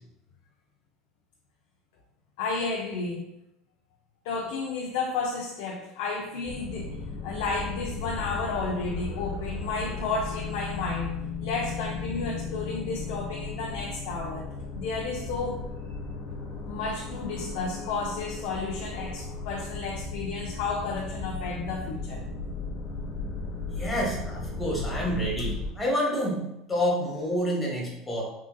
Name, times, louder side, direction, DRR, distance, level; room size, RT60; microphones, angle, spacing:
voice 1, 2.4-3.3 4.2-7.0 7.2-11.1 11.4-14.5 14.7-15.6 16.7-22.3, left 4 dB, 80° left, -1 dB, 0.4 m, -32 dB
sound 1, 6.4-25.7, left 3 dB, 50° left, 0.8 m, -36 dB
voice 2, 23.7-26.4 26.7-28.2, equal, 15° left, -3 dB, 1.1 m, -28 dB
3.7 x 2.5 x 2.3 m, 0.85 s
supercardioid pair, 115°, 0 cm